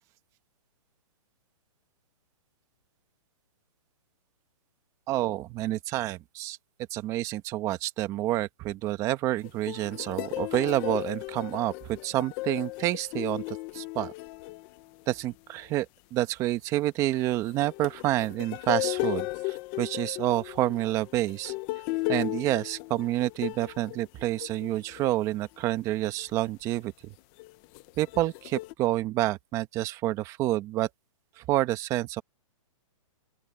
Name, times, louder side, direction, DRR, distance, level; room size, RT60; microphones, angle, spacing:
voice 1, 5.1-6.6 6.9-14.1 15.1-21.5 22.1-26.9 28.0-30.9 31.4-32.2, right 15 dB, 20° right, 1.2 m, -28 dB
sound 1, 9.4-15.2 17.1-25.4 26.0-26.3 27.4-28.7, left 20 dB, 25° left, 0.9 m, -35 dB
open air
hypercardioid pair, 170°, 17 cm